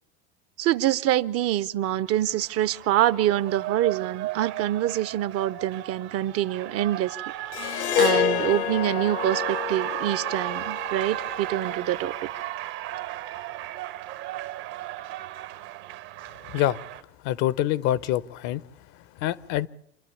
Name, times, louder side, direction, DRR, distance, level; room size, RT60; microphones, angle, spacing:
voice 1, 0.6-7.2 7.7-12.1, right 13 dB, 45° right, 0.7 m, -25 dB
Cheering, 1.8-17.0, right 14 dB, 65° right, 1.3 m, -35 dB
Harp, 7.5-12.0, left 10 dB, 90° left, 1.7 m, -28 dB
voice 2, 17.2-18.6 19.2-19.7, left 13 dB, 60° left, 0.8 m, -25 dB
27.0 x 11.5 x 8.4 m
supercardioid pair, 100°, 33 cm